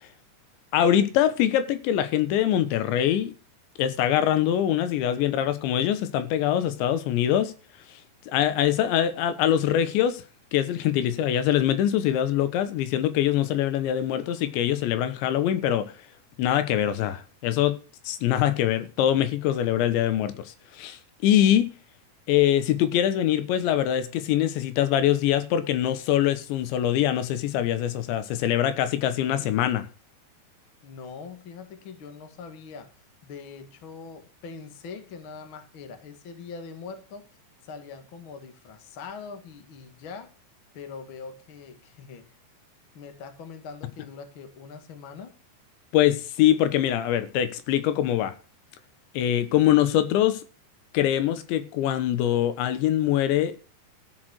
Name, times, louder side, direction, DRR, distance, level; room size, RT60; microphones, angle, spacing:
voice 1, 0.7-3.3 3.8-7.5 8.3-10.2 10.5-15.9 16.4-17.8 18.1-21.8 22.3-29.9 45.9-48.3 49.2-50.4 50.9-53.5, left 11 dB, 85° left, 3.4 m, -23 dB
voice 2, 30.8-32.9 33.2-37.2 37.6-40.3 40.7-42.3 42.9-45.4, left 5 dB, 45° left, 1.7 m, -42 dB
14.0 x 6.4 x 6.3 m
omnidirectional pair, 5.1 m